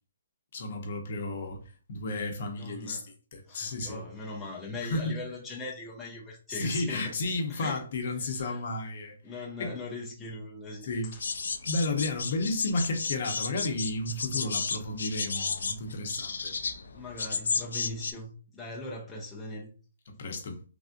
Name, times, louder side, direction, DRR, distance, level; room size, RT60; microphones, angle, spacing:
voice 1, 0.5-1.6 1.9-4.0 4.8-5.2 6.5-9.2 9.6-9.8 10.8-11.1 11.7-16.5 20.1-20.6, left 2 dB, 50° left, 0.7 m, -32 dB
voice 2, 2.5-3.1 3.5-7.1 7.5-7.8 8.2-8.6 9.2-10.9 11.1-11.2 16.9-19.7, left 2 dB, 5° left, 0.5 m, -40 dB
sound 1, 11.1-18.1, left 5 dB, 85° left, 0.4 m, -33 dB
3.3 x 2.5 x 2.5 m
hypercardioid pair, 170°, 0 cm